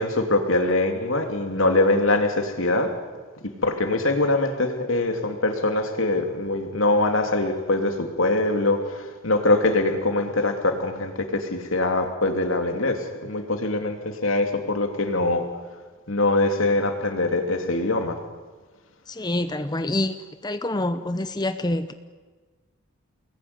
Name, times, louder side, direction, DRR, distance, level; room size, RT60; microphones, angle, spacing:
voice 1, 0.0-2.9 3.6-15.5 16.1-18.2, left 2 dB, 75° left, 5 dB, 3.0 m, -23 dB
voice 2, 19.1-20.1 20.4-21.9, left 1 dB, 20° left, 10 dB, 0.7 m, -26 dB
29.0 x 20.5 x 9.7 m, 1.4 s
head